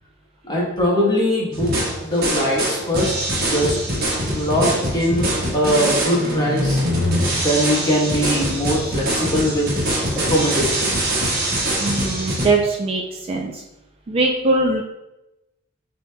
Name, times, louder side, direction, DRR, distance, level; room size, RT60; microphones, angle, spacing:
voice 1, 0.4-3.8 4.3-6.8 7.4-9.7 10.1-10.9 11.2-11.3, equal, 20° left, -3 dB, 1.0 m, -21 dB
sound 1, 1.5-12.5, right 1 dB, 50° right, 1.2 m, -23 dB
voice 2, 11.8-13.6 14.1-14.8, right 2 dB, 30° right, 1 dB, 0.3 m, -21 dB
6.5 x 2.8 x 2.2 m, 0.95 s
head